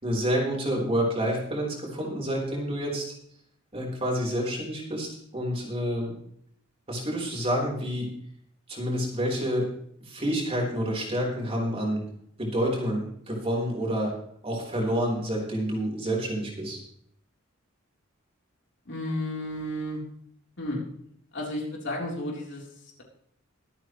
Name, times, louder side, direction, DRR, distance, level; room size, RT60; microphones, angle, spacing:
voice 1, 0.0-3.1 3.7-6.2 6.9-8.1 8.7-9.7 10.0-12.0 12.4-14.2 14.4-16.8, equal, 30° right, -2 dB, 4.1 m, -28 dB
voice 2, 18.9-20.0 20.6-20.8 21.3-23.0, left 1 dB, 60° left, -2 dB, 3.7 m, -33 dB
23.5 x 8.7 x 3.2 m, 0.66 s
head